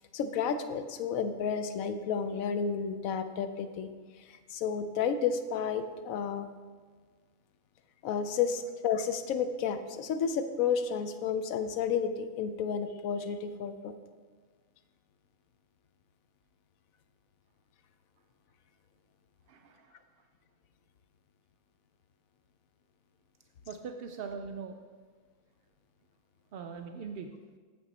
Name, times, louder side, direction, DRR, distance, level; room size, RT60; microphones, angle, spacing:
voice 1, 0.1-3.9 4.3-6.5 8.0-14.0, left 6 dB, 75° left, 9 dB, 1.0 m, -31 dB
voice 2, 19.5-20.3 23.7-24.8 26.5-27.3, right 5 dB, 75° right, 5 dB, 0.5 m, -42 dB
8.6 x 7.2 x 4.0 m, 1.5 s
omnidirectional pair, 1.5 m